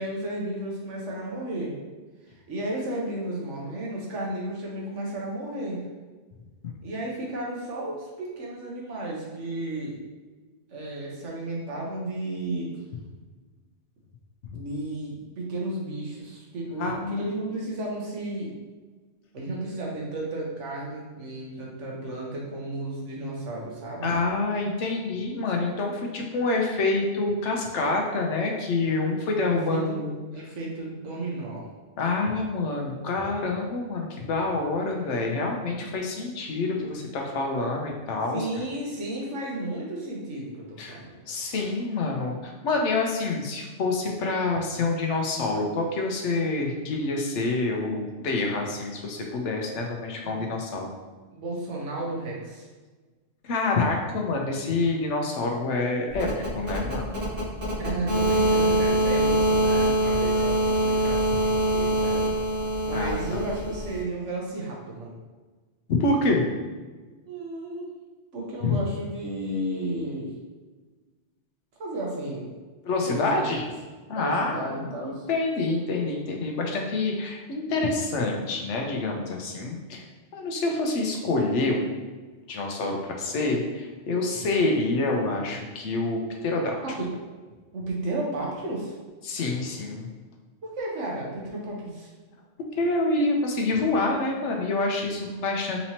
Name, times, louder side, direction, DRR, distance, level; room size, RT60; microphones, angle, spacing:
voice 1, 0.0-1.8 2.5-5.8 6.8-10.0 10.7-12.7 14.5-18.5 19.3-24.1 29.5-30.0 30.3-31.6 35.2-35.9 38.3-41.2 50.2-50.5 51.3-52.7 57.8-62.3 62.9-65.1 67.3-67.9 68.3-70.3 71.8-72.5 73.1-73.5 74.1-75.2 86.8-87.1 87.7-89.0 90.6-92.1, right 1 dB, 85° right, -3 dB, 1.3 m, -33 dB
voice 2, 16.8-17.3 24.0-30.2 32.0-38.5 40.8-41.0 41.3-50.9 53.4-57.1 62.9-63.4 66.0-66.4 68.6-68.8 72.8-73.7 74.1-80.0 80.3-82.0 82.5-86.8 89.2-90.1 92.7-95.8, left 3 dB, 80° left, 1 dB, 1.0 m, -27 dB
sound 1, 56.1-64.0, right 1 dB, 30° right, 1.6 m, -24 dB
4.2 x 2.9 x 2.8 m, 1.3 s
omnidirectional pair, 1.2 m